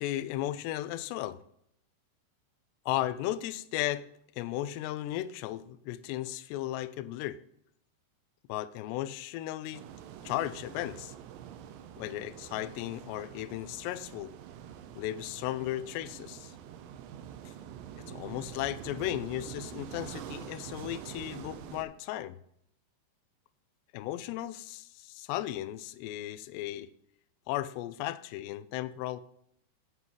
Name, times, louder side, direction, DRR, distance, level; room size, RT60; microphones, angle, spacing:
voice 1, 0.0-1.4 2.9-4.1 4.4-7.4 8.5-9.9 10.2-11.1 12.0-14.3 15.0-16.5 17.5-17.6 18.1-22.4 23.9-26.9 27.5-29.2, left 14 dB, 85° left, 2.5 m, -35 dB
sound 1, 9.7-21.9, right 9 dB, 85° right, 3.2 m, -46 dB
10.5 x 9.9 x 3.1 m
omnidirectional pair, 5.4 m